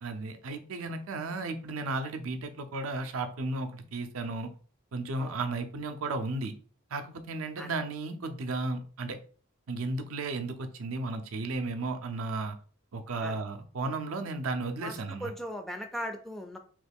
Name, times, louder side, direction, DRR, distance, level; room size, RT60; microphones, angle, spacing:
voice 1, 0.0-4.5 4.9-6.5 6.9-9.2 9.7-12.6 12.9-15.3, right 3 dB, 75° right, 7 dB, 0.5 m, -34 dB
voice 2, 15.2-16.6, equal, ahead, 5 dB, 0.3 m, -38 dB
3.0 x 2.3 x 3.4 m, 0.42 s
head